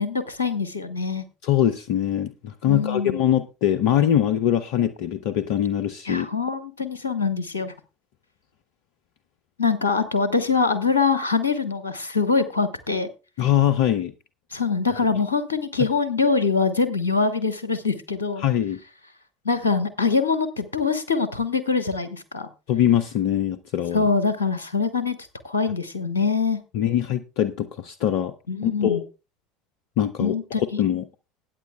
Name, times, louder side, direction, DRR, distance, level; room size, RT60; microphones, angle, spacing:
voice 1, 0.0-1.2 2.7-3.2 6.0-7.7 9.6-13.1 14.5-18.4 19.4-22.5 23.9-25.2 25.4-26.6 28.5-29.0 30.2-30.8, left 4 dB, 85° left, 1.1 m, -24 dB
voice 2, 1.4-6.3 13.4-14.1 18.4-18.8 22.7-24.0 26.7-28.3 28.6-29.0 30.0-31.0, left 11 dB, 60° left, 0.6 m, -22 dB
20.5 x 9.3 x 2.3 m
figure-of-eight pair, 65°, 0 cm